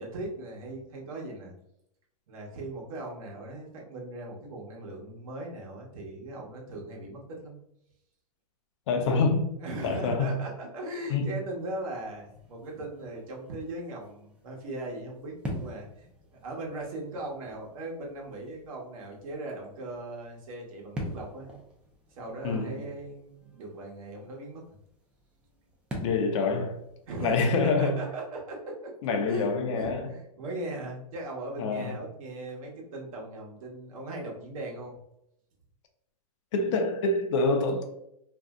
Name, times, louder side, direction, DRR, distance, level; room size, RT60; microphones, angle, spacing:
voice 1, 0.0-1.5 2.3-7.6 9.6-21.6 22.1-24.6 27.1-29.5 29.8-35.0, right 2 dB, 60° right, 1.0 m, -39 dB
voice 2, 8.9-9.6 9.8-10.4 11.1-11.4 22.4-22.7 26.0-26.8 27.2-28.0 29.0-30.1 31.6-32.0 36.5-37.8, left 3 dB, 50° left, 0.5 m, -26 dB
sound 1, 11.6-28.1, equal, 5° right, 0.4 m, -45 dB
2.6 x 2.0 x 3.4 m
hypercardioid pair, 140°, 20 cm